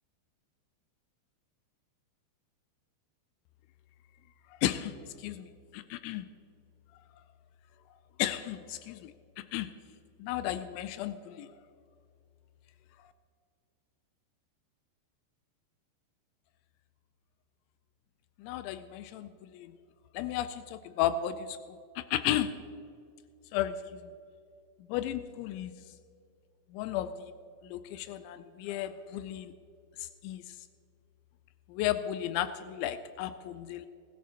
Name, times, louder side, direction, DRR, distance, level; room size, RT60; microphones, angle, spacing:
voice 1, 4.6-6.3 8.2-9.1 9.5-9.7 10.2-11.5 13.0-13.1 18.4-19.7 20.1-22.5 23.5-24.1 24.9-25.7 26.7-27.3 27.6-29.5 30.0-30.6 31.7-33.9, left 12 dB, 90° left, 11 dB, 2.9 m, -34 dB
20.0 x 13.5 x 2.9 m, 2.4 s
omnidirectional pair, 5.2 m